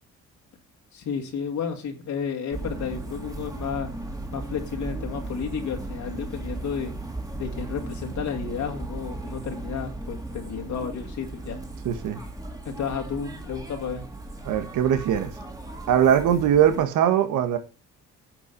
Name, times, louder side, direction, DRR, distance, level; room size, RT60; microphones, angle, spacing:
voice 1, 0.9-3.9 4.3-6.9 7.4-11.6 12.7-14.1, left 6 dB, 70° left, 2.2 m, -32 dB
sound 1, 2.5-16.8, right 2 dB, 10° right, 2.4 m, -36 dB
voice 2, 11.8-12.2 14.4-15.3 15.9-17.6, right 9 dB, 85° right, 1.6 m, -21 dB
11.0 x 6.2 x 5.4 m
cardioid pair, 90°, 30 cm